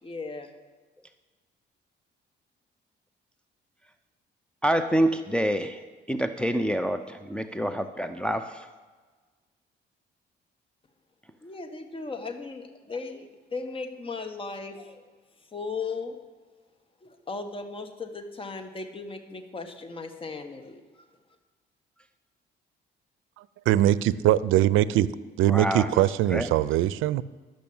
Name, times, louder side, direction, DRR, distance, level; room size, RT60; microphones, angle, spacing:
voice 1, 0.0-0.5 11.4-15.0 15.5-16.2 17.0-21.0, left 4 dB, 25° left, 5 dB, 1.5 m, -37 dB
voice 2, 4.6-5.8 6.1-8.7 25.5-26.0 26.3-26.5, right 1 dB, 5° left, 7 dB, 0.6 m, -27 dB
voice 3, 23.7-25.1 25.4-27.2, right 13 dB, 90° right, 19 dB, 0.5 m, -22 dB
12.0 x 6.2 x 8.7 m, 1.4 s
cardioid pair, 90°, 20 cm